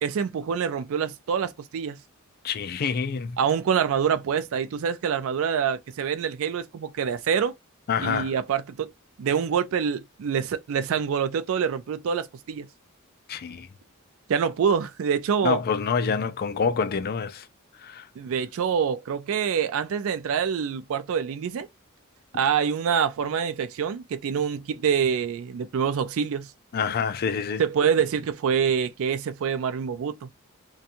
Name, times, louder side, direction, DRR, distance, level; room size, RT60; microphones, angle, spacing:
voice 1, 0.0-2.0 3.4-7.5 8.0-8.9 9.2-12.7 14.3-15.6 18.2-21.7 22.3-26.5 27.6-30.3, right 7 dB, 65° right, 0.4 m, -26 dB
voice 2, 2.4-3.4 7.9-8.3 13.3-13.7 15.4-17.5 17.8-18.1 26.7-27.6, left 6 dB, 45° left, 0.4 m, -27 dB
2.5 x 2.3 x 2.7 m
head